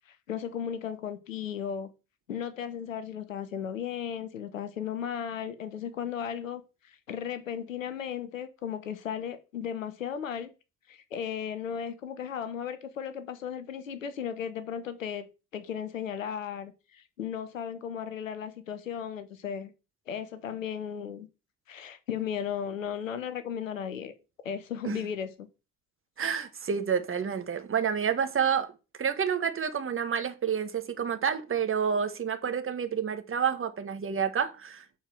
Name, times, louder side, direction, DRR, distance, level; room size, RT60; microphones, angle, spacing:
voice 1, 0.1-1.9 2.3-10.5 10.9-15.3 15.5-19.7 20.1-21.3 21.7-24.1 24.4-25.5, left 8 dB, 85° left, 0.6 m, -35 dB
voice 2, 26.2-28.7 29.0-34.8, right 7 dB, 35° right, 1.4 m, -29 dB
7.0 x 4.4 x 6.0 m
figure-of-eight pair, 45°, 39 cm